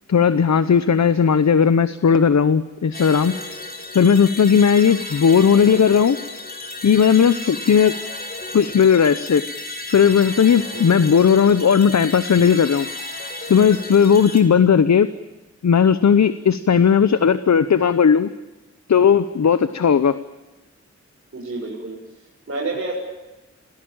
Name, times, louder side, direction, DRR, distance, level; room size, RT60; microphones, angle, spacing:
voice 1, 0.1-3.3 3.9-6.2 6.8-8.0 8.5-9.4 9.9-12.9 13.5-15.1 15.6-18.3 18.9-20.2, left 7 dB, 70° left, 13 dB, 1.0 m, -16 dB
sound 1, 2.9-14.4, left 2 dB, 30° left, 4.2 m, -33 dB
voice 2, 10.5-10.8 21.3-22.9, right 3 dB, 50° right, -5 dB, 7.1 m, -30 dB
28.0 x 18.5 x 8.9 m, 1.1 s
wide cardioid pair, 110°, 29 cm